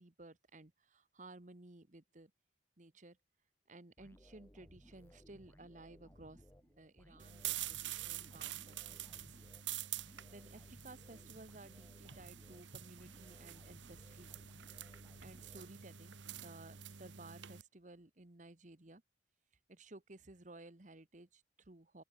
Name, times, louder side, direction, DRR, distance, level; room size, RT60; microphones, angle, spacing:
voice 1, 0.0-2.3 2.8-3.2 3.7-9.4 10.3-14.3 15.2-19.0 19.7-22.0, right 2 dB, 40° right, 1.3 m, -56 dB
sound 1, 4.0-16.2, equal, 10° left, 3.3 m, -62 dB
sound 2, 7.2-17.6, right 12 dB, 75° right, 1.4 m, -47 dB
open air
head